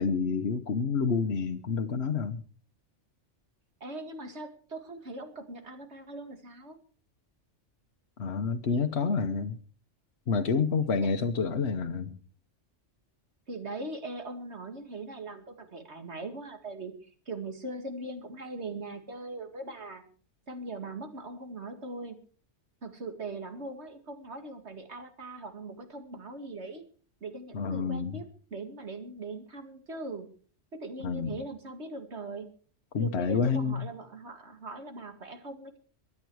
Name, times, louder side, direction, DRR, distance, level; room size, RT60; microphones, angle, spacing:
voice 1, 0.0-2.4 8.2-9.6 10.3-12.2 27.5-28.2 31.0-31.4 32.9-33.9, left 5 dB, 60° left, 5 dB, 1.3 m, -28 dB
voice 2, 3.8-6.8 11.0-11.1 13.5-16.9 17.3-20.0 20.5-22.2 22.8-26.8 27.2-30.3 30.7-32.5 33.0-35.8, right 2 dB, 65° right, 6 dB, 2.5 m, -40 dB
23.0 x 9.8 x 4.8 m, 0.42 s
omnidirectional pair, 1.3 m